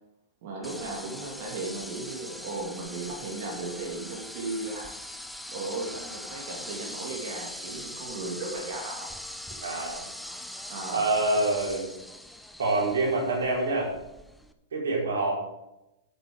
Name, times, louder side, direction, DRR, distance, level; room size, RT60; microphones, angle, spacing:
voice 1, 0.4-5.2 5.5-9.1 10.7-11.1, right 3 dB, 55° right, -2 dB, 2.7 m, -36 dB
sound 1, 0.6-14.5, left 1 dB, 5° left, 0.8 m, -41 dB
voice 2, 9.6-10.1 10.9-11.9 12.6-13.9 14.7-15.4, right 2 dB, 70° right, -3 dB, 4.4 m, -26 dB
11.0 x 8.1 x 5.2 m, 0.93 s
hypercardioid pair, 100°, 0 cm